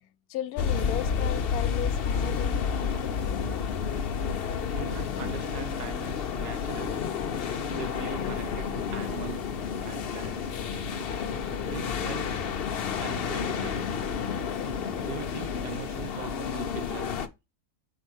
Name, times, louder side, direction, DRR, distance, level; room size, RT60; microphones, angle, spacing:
voice 1, 0.3-2.6, left 13 dB, 75° left, 1.1 m, -35 dB
sound 1, 0.6-17.3, left 6 dB, 50° left, 0.7 m, -30 dB
voice 2, 4.7-7.0 7.7-9.5 9.8-10.5 11.7-12.5 13.0-14.0 15.0-17.2, right 8 dB, 80° right, 1.6 m, -41 dB
Wind instrument woodwind instrument, 6.6-14.5, right 2 dB, 15° right, 3.1 m, -50 dB
5.4 x 4.8 x 6.3 m
omnidirectional pair, 1.7 m